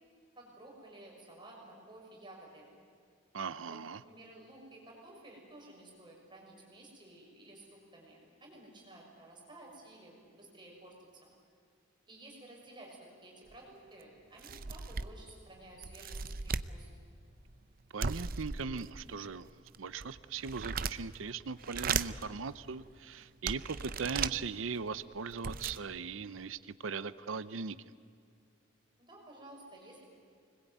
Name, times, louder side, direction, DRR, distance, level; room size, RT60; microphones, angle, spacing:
voice 1, 0.4-2.7 3.6-10.9 11.2-11.3 12.1-16.9 29.0-30.1, right 1 dB, 25° right, -1 dB, 6.4 m, -53 dB
voice 2, 3.3-4.0 17.9-19.5 19.8-27.8, right 5 dB, 90° right, 15 dB, 0.7 m, -39 dB
sound 1, 13.5-13.6 14.0-14.1 14.4-15.3 15.8-16.7 18.0-19.1 19.7-21.2 21.6-22.3 22.9-23.0 23.5-24.4 25.0-25.1 25.3-25.8, right 5 dB, 45° right, 0.7 m, -36 dB
25.5 x 21.0 x 9.3 m, 2.3 s
head